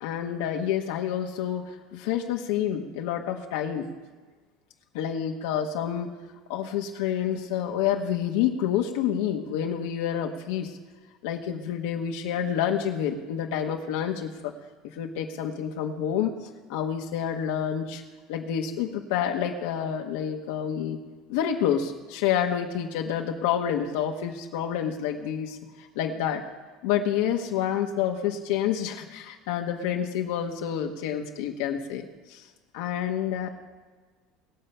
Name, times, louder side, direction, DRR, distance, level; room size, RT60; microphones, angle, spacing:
voice 1, 0.0-3.9 4.9-6.1 6.5-10.8 11.2-14.3 14.8-16.3 16.7-18.0 18.3-21.0 21.3-26.4 26.8-32.5 32.7-33.5, left 9 dB, 85° left, 2 dB, 1.2 m, -28 dB
20.0 x 6.8 x 5.6 m, 1.3 s
cardioid pair, 150°, 0 cm